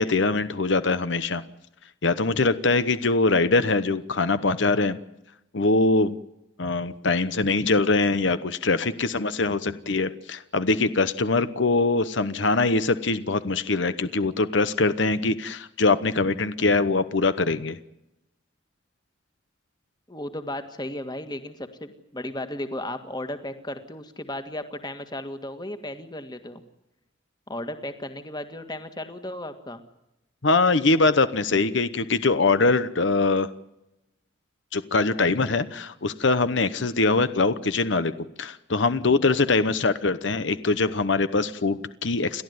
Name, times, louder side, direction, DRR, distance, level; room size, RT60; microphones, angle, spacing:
voice 1, 0.0-1.4 2.0-5.0 5.5-6.2 6.6-17.8 30.4-33.5 34.7-38.1 38.4-42.4, left 3 dB, 70° left, 12 dB, 1.0 m, -23 dB
voice 2, 20.1-26.6 27.5-29.8, left 1 dB, 20° left, 8 dB, 1.8 m, -35 dB
30.0 x 12.5 x 9.5 m, 0.90 s
head